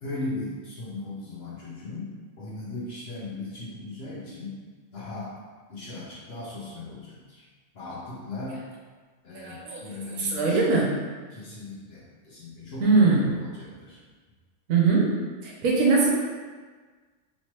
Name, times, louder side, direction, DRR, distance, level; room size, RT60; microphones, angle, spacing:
voice 1, 0.0-4.6 4.9-5.3 5.7-7.4 7.7-8.7 9.2-10.6 11.3-14.0, left 2 dB, 55° left, -7 dB, 0.9 m, -38 dB
voice 2, 9.3-10.9 12.8-13.3 14.7-15.1 15.4-16.1, right 4 dB, 70° right, -3 dB, 1.0 m, -22 dB
3.2 x 3.1 x 2.9 m, 1.4 s
omnidirectional pair, 1.5 m